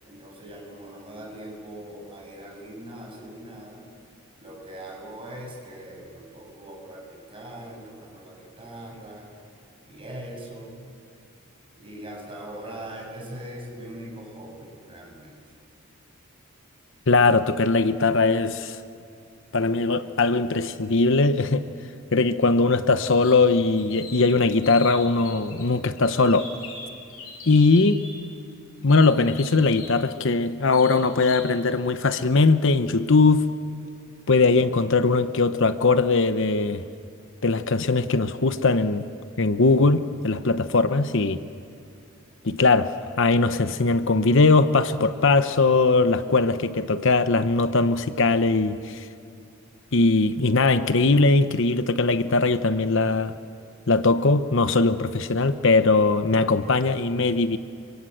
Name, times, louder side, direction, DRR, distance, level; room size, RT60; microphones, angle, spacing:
voice 1, 0.0-3.8 4.4-9.3 9.8-10.7 11.8-15.4, right 1 dB, 25° right, 7.1 m, -41 dB
voice 2, 17.1-18.8 19.5-21.7 22.1-26.5 27.5-28.1 28.8-33.5 34.3-36.8 37.4-39.1 39.4-41.4 42.4-49.1 49.9-53.3 53.9-57.6, left 3 dB, 60° left, 0.9 m, -20 dB
sound 1, 23.0-23.4 23.8-25.6 26.0-28.1 28.9-30.0 30.7-31.5, left 4 dB, 90° left, 6.3 m, -41 dB
28.0 x 25.0 x 8.0 m
head